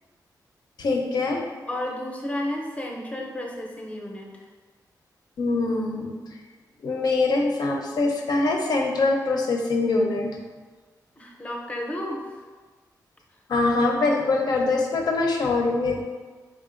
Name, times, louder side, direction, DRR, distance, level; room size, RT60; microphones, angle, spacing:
voice 1, 0.8-1.4 5.4-6.1 6.8-10.3 13.5-16.0, left 3 dB, 70° left, 1 dB, 0.5 m, -23 dB
voice 2, 1.7-4.4 11.2-12.4, left 1 dB, 20° left, 0 dB, 0.6 m, -32 dB
3.7 x 3.7 x 2.5 m, 1.4 s
wide cardioid pair, 115°, 7 cm